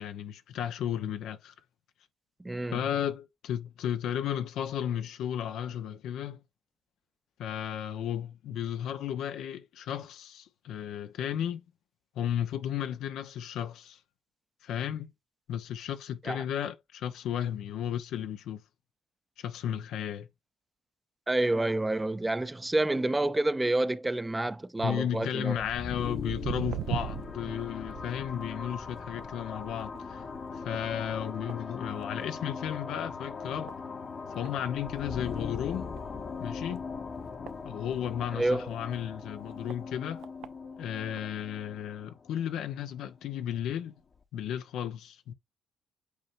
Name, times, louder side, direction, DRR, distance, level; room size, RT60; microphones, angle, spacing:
voice 1, 0.0-1.5 2.7-6.4 7.4-11.6 12.1-14.0 14.6-15.1 15.5-18.6 19.4-20.3 24.8-30.3 30.5-33.8 34.3-36.0 36.4-36.8 37.6-40.3 40.8-44.0 44.3-45.3, left 9 dB, 80° left, 0.8 m, -34 dB
voice 2, 2.4-2.8 16.3-16.4 21.3-25.6 38.3-38.7, right 2 dB, 15° right, 0.6 m, -28 dB
sound 1, 25.6-43.1, left 5 dB, 45° left, 1.1 m, -40 dB
Walk footsteps, 25.8-32.4 32.8-33.1 33.7-33.8 34.4-34.5 34.9-35.0 35.2-35.3 35.9-36.1 36.7-38.3 38.9-39.0 39.7-39.8 40.2-40.5 41.2-41.3, right 11 dB, 85° right, 0.6 m, -40 dB
8.4 x 4.5 x 2.6 m
cardioid pair, 90°, 0 cm